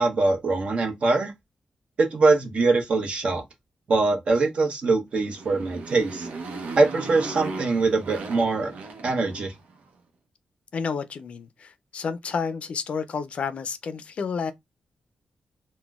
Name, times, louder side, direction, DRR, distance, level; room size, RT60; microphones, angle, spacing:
voice 1, 0.0-1.3 2.0-3.4 3.9-6.3 6.8-8.7 9.0-9.5, right 3 dB, 55° right, 0.9 m, -22 dB
Motorcycle, 5.1-9.8, right 3 dB, 90° right, 0.7 m, -37 dB
voice 2, 10.7-14.5, left 5 dB, 55° left, 0.4 m, -30 dB
3.8 x 2.1 x 2.3 m
wide cardioid pair, 120°, 2 cm